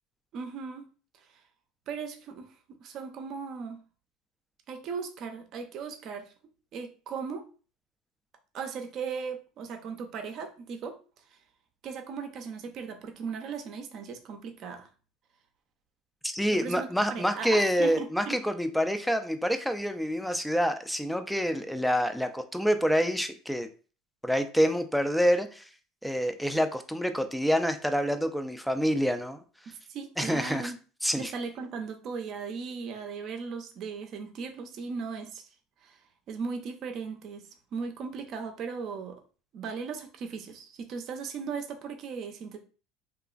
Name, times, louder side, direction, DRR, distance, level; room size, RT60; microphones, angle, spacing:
voice 1, 0.3-0.9 1.9-2.5 2.8-3.8 4.7-6.3 6.7-7.4 8.5-11.0 11.3-11.4 11.8-14.9 16.5-18.4 29.7-30.8 31.2-35.5 35.8-36.0 36.3-37.4 37.7-39.2 39.5-42.6, right 5 dB, 50° right, 5 dB, 0.5 m, -37 dB
voice 2, 16.2-23.7 24.2-25.7 26.0-29.4 30.2-30.7 31.0-31.3, equal, ahead, 8 dB, 0.3 m, -27 dB
2.9 x 2.4 x 2.4 m, 0.37 s
supercardioid pair, 100°, 0 cm